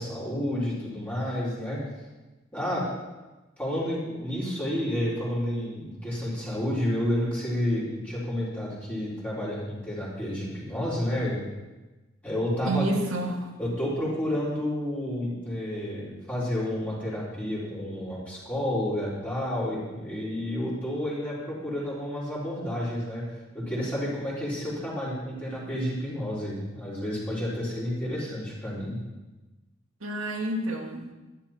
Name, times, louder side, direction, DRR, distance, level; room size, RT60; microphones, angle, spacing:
voice 1, 0.0-1.8 2.5-2.9 3.6-11.4 12.2-12.8 13.6-23.2 23.5-29.0, left 1 dB, 10° left, -9 dB, 4.0 m, -30 dB
voice 2, 12.6-13.6 30.0-31.1, right 2 dB, 90° right, 2 dB, 2.0 m, -29 dB
13.0 x 11.5 x 4.4 m, 1.1 s
head